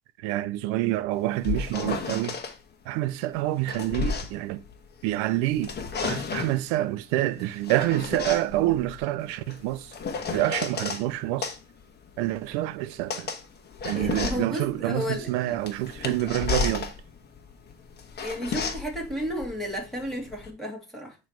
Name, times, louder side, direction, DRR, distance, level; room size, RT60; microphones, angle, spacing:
voice 1, 0.2-2.4 2.9-4.6 5.0-5.7 6.0-9.9 10.3-11.5 12.2-13.3 13.8-16.9, right 15 dB, 85° right, 0.6 m, -27 dB
sound 1, 1.2-2.5 3.4-5.2 5.5-6.6 7.4-11.0 11.4-20.5, left 5 dB, 35° left, 1.3 m, -33 dB
voice 2, 13.9-15.6 18.2-21.2, equal, ahead, 2.6 m, -33 dB
9.2 x 3.2 x 4.5 m
cardioid pair, 120°, 30 cm